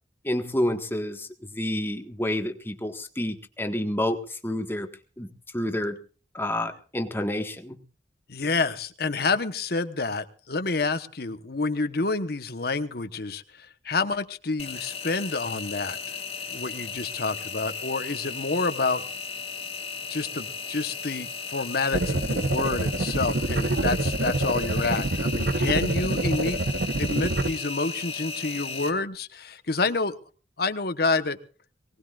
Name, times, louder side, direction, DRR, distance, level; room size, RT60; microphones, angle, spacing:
voice 1, 0.2-4.9 5.2-6.0 6.3-7.8, left 1 dB, 15° left, 6 dB, 1.5 m, -29 dB
voice 2, 8.3-16.0 16.5-19.0 20.1-26.6 27.0-30.1 30.6-31.4, left 3 dB, 60° left, 9 dB, 1.1 m, -28 dB
Engine, 14.6-28.9, left 5 dB, 35° left, 2.3 m, -35 dB
sound 1, 21.9-27.5, right 2 dB, 65° right, 1.0 m, -26 dB
23.0 x 18.5 x 2.5 m, 0.39 s
head